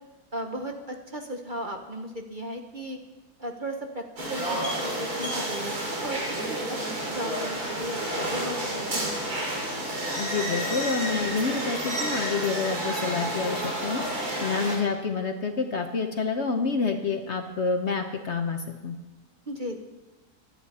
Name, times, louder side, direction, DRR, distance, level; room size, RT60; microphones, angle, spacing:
voice 1, 0.3-3.0 3.4-9.3 19.5-19.8, equal, 35° right, 4 dB, 1.0 m, -36 dB
sound 1, 4.2-14.8, right 1 dB, 65° right, 3.5 m, -30 dB
voice 2, 10.2-14.0 14.4-18.9, left 4 dB, 50° left, 6 dB, 1.0 m, -28 dB
23.5 x 9.0 x 4.2 m, 1.1 s
omnidirectional pair, 1.7 m